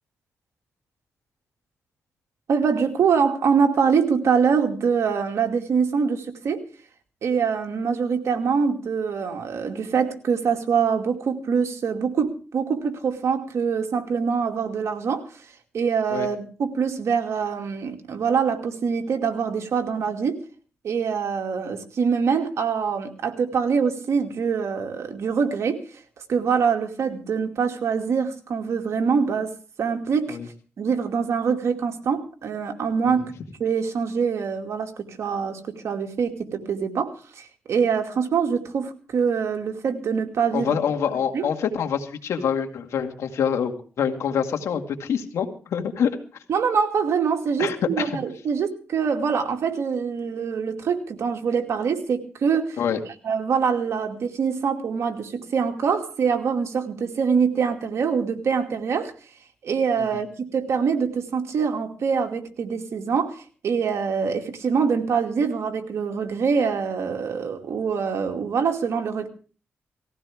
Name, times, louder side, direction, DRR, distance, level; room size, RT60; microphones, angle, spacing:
voice 1, 2.5-6.7 7.2-15.3 15.7-20.4 20.8-25.8 26.3-30.4 30.8-33.3 33.6-40.7 41.3-41.4 46.5-52.8 53.2-59.1 59.6-60.3 60.5-69.3, right 6 dB, 75° right, 5 dB, 2.4 m, -24 dB
voice 2, 40.5-46.2 47.6-48.1 52.8-53.0 60.0-60.1, left 7 dB, 85° left, 4 dB, 2.1 m, -26 dB
19.5 x 15.5 x 3.6 m, 0.38 s
cardioid pair, 70°, 5 cm